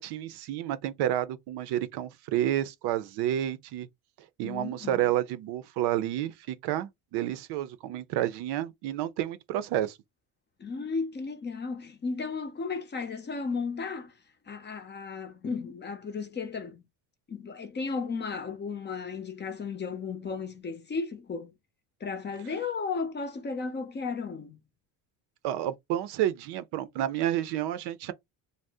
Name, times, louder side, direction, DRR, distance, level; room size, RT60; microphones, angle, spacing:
voice 1, 0.0-3.9 4.4-10.0 25.4-28.1, right 12 dB, 70° right, 0.5 m, -30 dB
voice 2, 4.4-5.0 10.6-14.1 14.5-16.8 17.3-21.5 22.0-24.6, left 4 dB, 25° left, 0.5 m, -34 dB
2.6 x 2.0 x 3.3 m
cardioid pair, 105°, 41 cm